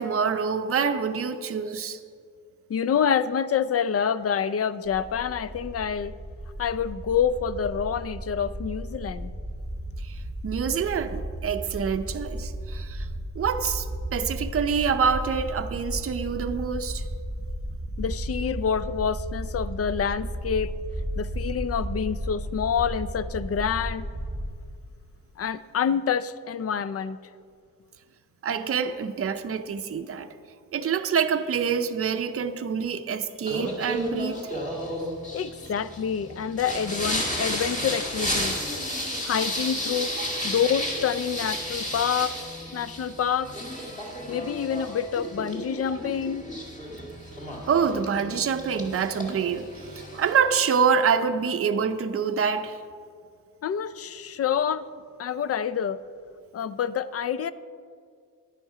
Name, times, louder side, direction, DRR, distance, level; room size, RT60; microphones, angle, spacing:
voice 1, 0.0-2.0 10.0-13.1 13.4-13.9 14.1-17.0 28.4-30.3 30.7-34.5 39.0-39.1 40.2-40.3 45.9-46.0 47.7-52.8, right 6 dB, 40° right, 7 dB, 0.6 m, -26 dB
voice 2, 2.7-6.1 6.6-9.3 18.0-20.7 21.2-24.0 25.4-27.2 35.3-38.6 39.2-40.1 40.4-42.3 42.7-43.5 44.3-46.4 53.6-54.8 55.2-56.0 56.5-57.5, left 7 dB, 45° left, 15 dB, 0.4 m, -27 dB
sound 1, 4.8-24.5, right 1 dB, ahead, 1.2 m, -34 dB
Singing, 33.5-50.4, equal, 20° left, 2.0 m, -33 dB
10.5 x 9.1 x 4.9 m, 2.2 s
wide cardioid pair, 140°, 34 cm